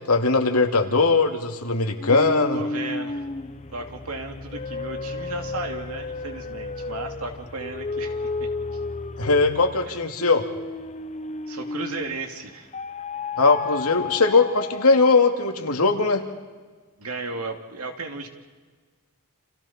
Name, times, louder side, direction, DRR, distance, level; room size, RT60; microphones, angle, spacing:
voice 1, 0.1-2.6 9.2-10.5 13.4-16.2, left 3 dB, 90° left, 4 dB, 2.4 m, -20 dB
sound 1, 2.0-12.2 12.7-15.5, left 3 dB, 30° left, 0.8 m, -33 dB
voice 2, 2.5-3.2 3.7-8.5 9.9-10.0 11.5-12.7 17.0-18.3, right 3 dB, 75° right, 4 dB, 2.6 m, -35 dB
29.5 x 28.0 x 4.4 m, 1.4 s
head